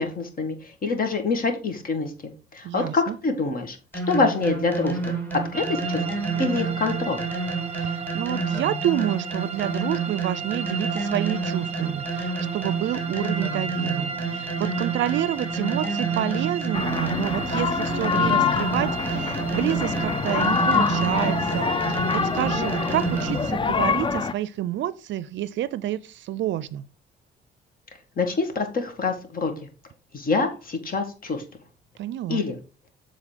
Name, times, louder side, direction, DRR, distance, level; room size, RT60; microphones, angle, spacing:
voice 1, 0.0-3.8 4.1-6.0 6.4-7.3 28.2-29.5 30.1-31.4 32.3-32.5, left 3 dB, 45° left, 1.8 m, -26 dB
voice 2, 2.6-3.2 7.7-26.9 32.0-32.4, right 12 dB, 70° right, 0.5 m, -29 dB
sound 1, 3.9-23.6, right 4 dB, 10° left, 2.2 m, -29 dB
sound 2, 5.5-23.5, right 5 dB, 35° right, 0.7 m, -35 dB
Japanese drinking game, 16.7-24.3, left 5 dB, 25° left, 0.5 m, -25 dB
7.4 x 3.9 x 5.0 m
cardioid pair, 90°, 20 cm